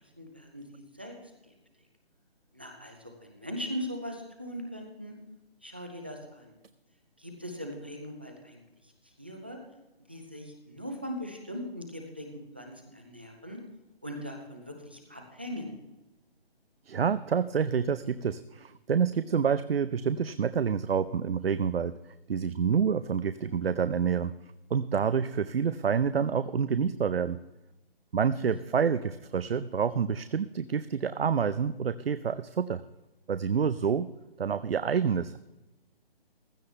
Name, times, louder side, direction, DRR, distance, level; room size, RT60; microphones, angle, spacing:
voice 1, 0.2-1.1 1.4-1.5 2.5-5.2 5.6-6.5 7.2-9.6 10.1-12.3 12.5-13.6 14.0-15.8 23.5-23.6, equal, 10° right, 2 dB, 0.6 m, -40 dB
voice 2, 16.9-21.9 22.3-24.3 24.7-27.4 28.1-32.8 33.3-34.1 34.4-35.4, right 6 dB, 75° right, 13 dB, 0.7 m, -28 dB
16.0 x 12.5 x 3.3 m, 1.0 s
hypercardioid pair, 170°, 30 cm